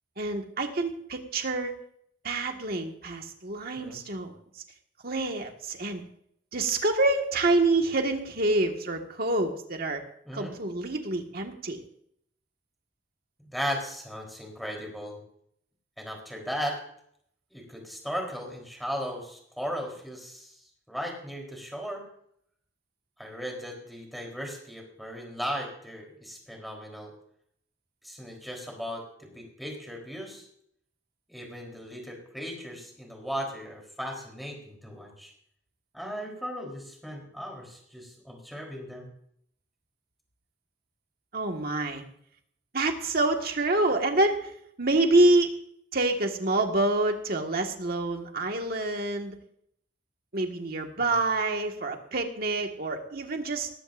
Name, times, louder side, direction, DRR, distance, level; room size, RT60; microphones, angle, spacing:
voice 1, 0.2-1.8 2.2-4.4 5.0-6.0 6.5-10.0 10.3-11.8 41.3-42.0 42.7-44.5 44.8-45.5 45.9-49.4 50.3-53.7, right 2 dB, 55° right, 3 dB, 1.8 m, -27 dB
voice 2, 13.5-15.2 16.0-16.8 17.5-20.5 20.9-22.0 23.2-27.1 28.0-30.5 31.3-35.3 35.9-39.1 51.0-51.2, equal, ahead, 0 dB, 3.8 m, -37 dB
18.5 x 15.0 x 2.6 m, 0.68 s
head